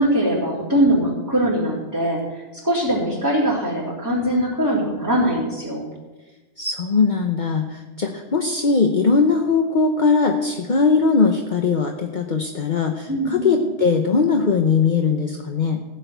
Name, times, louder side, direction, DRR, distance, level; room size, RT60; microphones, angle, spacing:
voice 1, 0.0-5.9 13.1-13.6, right 1 dB, 15° right, -10 dB, 3.8 m, -21 dB
voice 2, 6.6-15.8, left 4 dB, 50° left, 3 dB, 1.0 m, -20 dB
15.5 x 6.8 x 8.1 m, 1.2 s
omnidirectional pair, 1.1 m